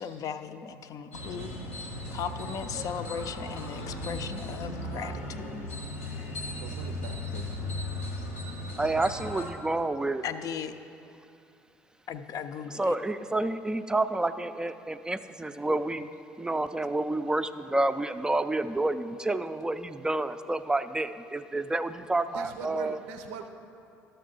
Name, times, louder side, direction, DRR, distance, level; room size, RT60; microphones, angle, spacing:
voice 1, 0.0-1.5 2.1-5.7 10.2-10.7 12.1-13.0, left 7 dB, 50° left, 9 dB, 0.5 m, -37 dB
sound 1, 1.1-9.5, left 1 dB, 90° left, 1.0 m, -37 dB
voice 2, 6.5-7.7 22.3-23.5, right 6 dB, 75° right, 6 dB, 0.5 m, -42 dB
voice 3, 8.8-10.2 12.7-16.1 16.4-23.0, right 2 dB, 10° right, 11 dB, 0.4 m, -29 dB
12.0 x 6.7 x 3.8 m, 2.6 s
hypercardioid pair, 60°, 7 cm